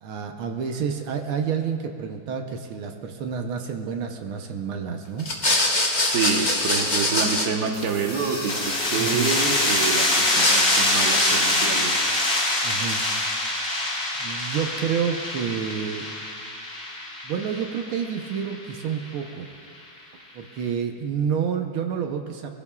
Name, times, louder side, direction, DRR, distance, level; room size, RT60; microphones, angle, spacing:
voice 1, 0.0-5.3 9.0-9.4 12.6-13.0 14.2-16.1 17.2-19.5 20.3-22.5, right 7 dB, 85° right, 4 dB, 1.8 m, -29 dB
sound 1, 5.2-9.8 10.1-11.7, left 2 dB, 25° left, 1.1 m, -25 dB
voice 2, 5.9-12.0, right 6 dB, 55° right, 2 dB, 1.6 m, -27 dB
sound 2, 7.7-19.1, left 1 dB, 45° left, 2.3 m, -25 dB
23.0 x 15.5 x 2.4 m, 2.3 s
omnidirectional pair, 2.3 m